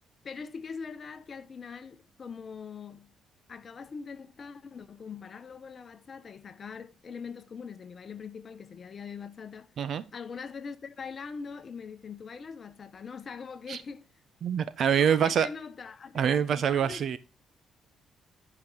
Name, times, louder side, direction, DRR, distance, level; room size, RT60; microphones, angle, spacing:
voice 1, 0.2-3.1 3.5-9.7 10.1-14.1 15.0-17.2, left 5 dB, 45° left, 0.9 m, -42 dB
voice 2, 14.4-15.5 16.1-17.2, right 8 dB, 60° right, 1.0 m, -25 dB
11.5 x 5.2 x 3.9 m
cardioid pair, 90°, 0 cm